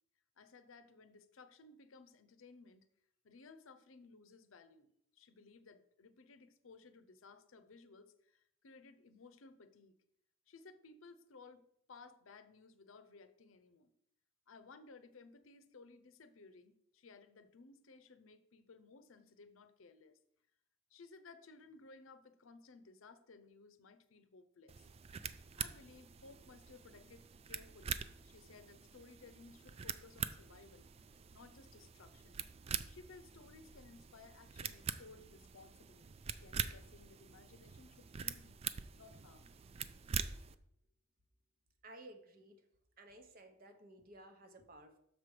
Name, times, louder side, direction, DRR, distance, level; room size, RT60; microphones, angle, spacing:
voice 1, 0.4-2.9 3.2-9.9 10.5-13.9 14.5-20.2 20.9-24.9 25.6-28.0 28.2-30.9 31.3-32.4 32.9-38.6 38.9-39.5, left 4 dB, 80° left, 11 dB, 0.7 m, -59 dB
sound 1, 24.7-40.5, right 7 dB, 30° right, 0.3 m, -45 dB
voice 2, 41.8-42.7 43.0-45.0, right 1 dB, 45° right, 6 dB, 1.0 m, -56 dB
6.6 x 6.0 x 4.9 m, 0.74 s
head